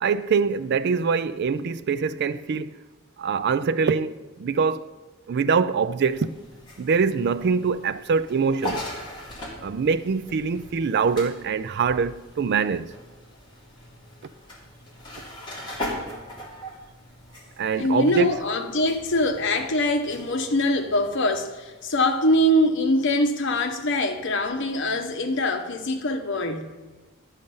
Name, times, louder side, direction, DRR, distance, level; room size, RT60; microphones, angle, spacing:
voice 1, 0.0-2.7 3.2-4.9 5.3-6.3 6.8-8.8 9.6-12.9 17.6-18.3, right 5 dB, 50° right, 0.3 m, -24 dB
sound 1, 6.0-22.1, left 1 dB, 20° left, 2.3 m, -40 dB
voice 2, 17.7-26.7, left 1 dB, 60° left, 1.0 m, -23 dB
11.5 x 6.5 x 5.4 m
head